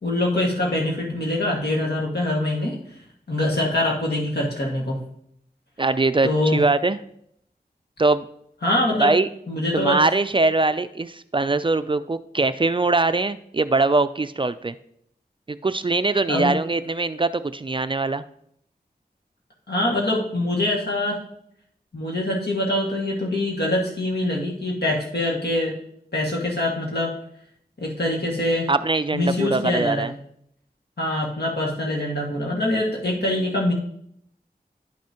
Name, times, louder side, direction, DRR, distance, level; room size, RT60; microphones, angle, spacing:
voice 1, 0.0-2.7 3.3-5.0 6.2-6.6 8.6-9.1 9.5-10.0 16.3-16.5 19.7-21.2 21.9-25.7 26.1-27.1 27.8-28.7 29.1-30.1 31.0-33.7, left 1 dB, 80° left, -2 dB, 1.9 m, -24 dB
voice 2, 5.8-7.0 8.0-8.3 9.0-9.3 9.7-14.8 15.5-18.2 28.7-30.1, right 3 dB, 30° right, 13 dB, 0.3 m, -22 dB
9.8 x 6.0 x 2.9 m, 0.70 s
wide cardioid pair, 40°, 17 cm